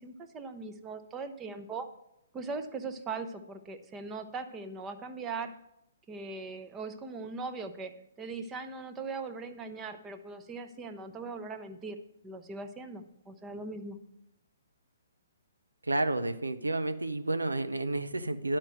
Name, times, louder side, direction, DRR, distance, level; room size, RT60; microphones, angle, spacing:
voice 1, 0.0-1.9 2.3-5.5 6.1-7.9 8.2-12.0 12.2-14.0, right 4 dB, 15° right, 7 dB, 0.7 m, -40 dB
voice 2, 15.8-18.6, right 2 dB, 90° right, 9 dB, 0.6 m, -30 dB
10.5 x 4.4 x 6.1 m, 0.81 s
figure-of-eight pair, 130°, 0 cm